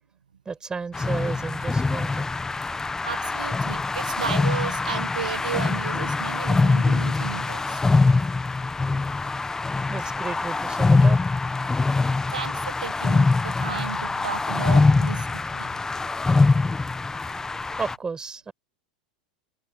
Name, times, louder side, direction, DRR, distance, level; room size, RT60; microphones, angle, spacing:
voice 1, 0.4-2.3 9.9-11.4 17.8-18.5, right 4 dB, 20° right, 6.8 m, -33 dB
sound 1, 0.9-18.0, left 3 dB, 15° left, 1.3 m, -23 dB
voice 2, 2.7-7.8 12.3-15.7, right 7 dB, 85° right, 1.6 m, -34 dB
hypercardioid pair, 90°, 4 cm